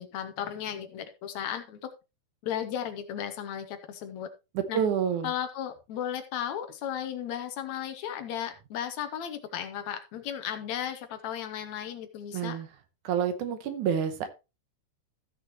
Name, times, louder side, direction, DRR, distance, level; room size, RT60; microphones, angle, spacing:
voice 1, 0.0-1.9 2.4-4.3 4.7-4.8 5.2-12.6, left 9 dB, 70° left, 8 dB, 2.0 m, -35 dB
voice 2, 4.5-5.3 12.3-12.7 13.0-14.3, right 8 dB, 75° right, 9 dB, 2.4 m, -28 dB
14.5 x 6.5 x 3.1 m, 0.27 s
omnidirectional pair, 3.6 m